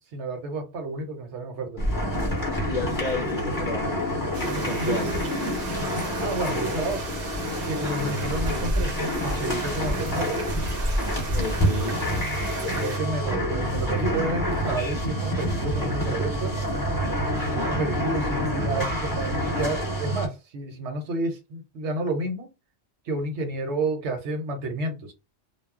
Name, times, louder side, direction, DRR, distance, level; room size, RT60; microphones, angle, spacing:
voice 1, 0.1-1.8 4.8-5.3 5.8-7.1 7.6-8.9 9.2-10.5 12.6-16.7 17.5-22.5 23.0-25.1, right 2 dB, 85° right, 1.1 m, -30 dB
sound 1, 1.8-20.3, equal, 20° left, 0.8 m, -27 dB
voice 2, 2.7-4.1 4.5-5.1 7.8-8.1 11.3-12.0 17.5-18.0, left 3 dB, 55° left, 0.5 m, -33 dB
sound 2, 4.3-13.0, right 3 dB, 65° right, 0.7 m, -37 dB
2.3 x 2.0 x 3.5 m
omnidirectional pair, 1.1 m